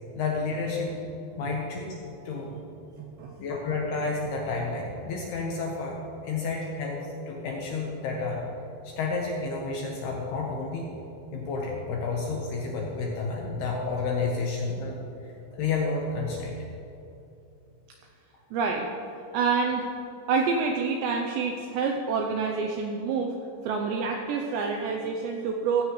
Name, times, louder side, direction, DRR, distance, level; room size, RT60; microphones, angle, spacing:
voice 1, 0.2-1.9 2.3-2.5 3.4-8.4 8.8-10.9 11.3-15.0 15.5-16.6, left 4 dB, 70° left, -1 dB, 2.5 m, -30 dB
voice 2, 3.0-3.4 18.5-18.9 19.3-19.9 20.3-23.4 23.6-25.8, right 5 dB, 85° right, 2 dB, 2.5 m, -27 dB
16.5 x 15.0 x 3.2 m, 2.7 s
omnidirectional pair, 5.9 m